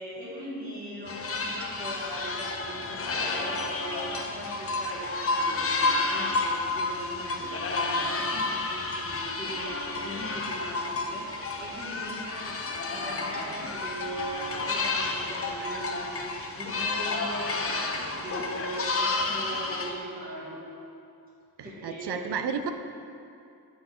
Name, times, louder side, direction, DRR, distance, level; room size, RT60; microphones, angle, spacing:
voice 1, 0.0-20.7 21.6-22.2, right 1 dB, 20° right, -11 dB, 1.5 m, -40 dB
sound 1, 1.1-19.9, left 3 dB, 35° left, 0.5 m, -31 dB
voice 2, 21.6-22.7, right 6 dB, 75° right, 7 dB, 0.5 m, -32 dB
6.7 x 5.9 x 3.7 m, 2.6 s
wide cardioid pair, 180°, 40 cm